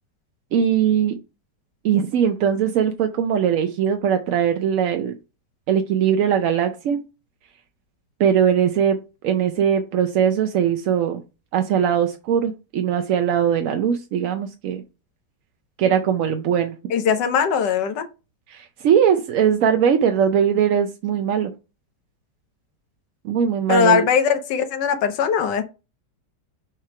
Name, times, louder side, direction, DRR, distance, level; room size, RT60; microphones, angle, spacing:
voice 1, 0.5-1.1 1.8-5.1 5.7-7.0 8.2-9.0 9.2-11.2 11.5-14.8 15.8-16.7 18.5-21.5 23.2-24.0, right 8 dB, 65° right, 0.8 m, -20 dB
voice 2, 16.9-18.1 23.7-25.6, left 7 dB, 85° left, 1.5 m, -20 dB
6.4 x 3.3 x 4.8 m
omnidirectional pair, 1.8 m